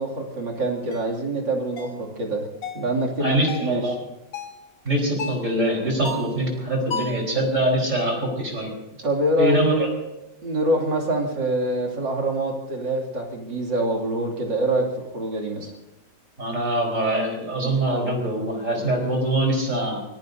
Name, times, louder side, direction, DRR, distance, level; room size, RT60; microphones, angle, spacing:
voice 1, 0.0-2.5 2.7-4.0 9.0-9.8 10.4-15.7, right 1 dB, 70° right, 0 dB, 3.3 m, -25 dB
sound 1, 0.9-1.1 1.8-2.0 2.6-2.9 3.5-3.7 4.3-4.6 5.2-5.5 6.0-6.4 6.9-7.3, left 3 dB, 70° left, 1.9 m, -33 dB
voice 2, 3.2-4.0 4.8-8.7 9.4-9.9 16.4-20.0, right 1 dB, 40° right, 0 dB, 4.8 m, -23 dB
24.5 x 21.5 x 2.7 m, 0.96 s
omnidirectional pair, 2.0 m